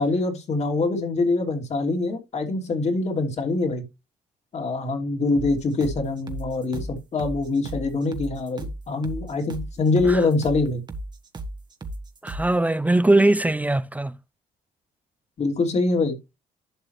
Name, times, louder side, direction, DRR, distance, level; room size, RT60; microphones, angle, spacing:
voice 1, 0.0-3.8 4.5-10.8 15.4-16.1, left 3 dB, 40° left, 2.8 m, -24 dB
sound 1, 5.3-12.6, right 1 dB, 25° right, 1.5 m, -35 dB
voice 2, 12.2-14.1, right 2 dB, 10° right, 0.4 m, -20 dB
11.5 x 6.4 x 3.1 m
cardioid pair, 110°, 17 cm